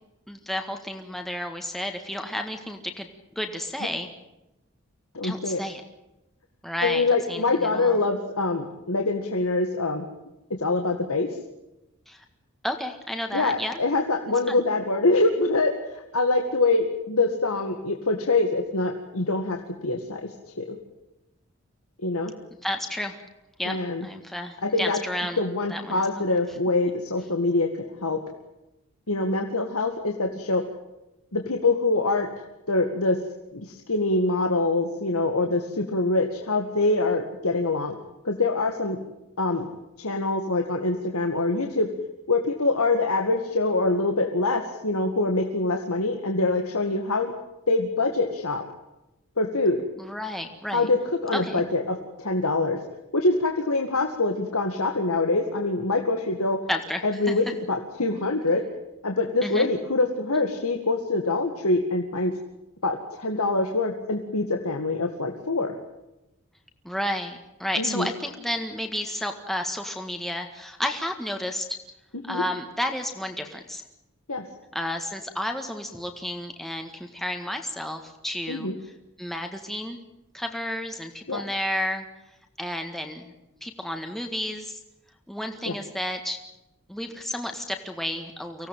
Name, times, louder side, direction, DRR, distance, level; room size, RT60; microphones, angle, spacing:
voice 1, 0.3-3.1 3.4-4.1 5.2-5.8 6.6-8.0 12.1-12.2 12.6-13.8 14.5-14.6 22.6-23.2 23.6-25.4 25.7-26.1 50.0-50.9 51.3-51.6 56.7-57.3 59.4-59.7 60.3-60.4 66.8-71.7 72.2-73.8 74.7-78.9 79.2-80.0 80.3-82.1 82.6-83.3 83.6-84.8 85.3-86.4 86.9-88.7, left 1 dB, ahead, 4 dB, 1.7 m, -31 dB
voice 2, 5.1-5.6 6.8-10.1 10.6-11.3 13.3-15.7 16.1-20.2 20.6-20.8 22.0-22.3 23.7-24.1 24.6-25.0 25.4-27.7 28.0-28.2 29.1-30.6 31.3-32.3 32.7-33.2 33.5-38.0 38.2-39.0 39.4-39.7 40.0-41.9 42.3-47.3 47.7-48.6 49.4-49.8 50.7-51.0 51.2-52.8 53.1-56.6 57.0-58.6 59.0-62.3 62.8-65.7 67.8-68.1 72.3-72.4 74.3-74.4 78.5-78.7 81.3-81.4 85.7-85.8, left 2 dB, 85° left, 3 dB, 2.0 m, -24 dB
24.5 x 17.0 x 9.2 m, 0.93 s
head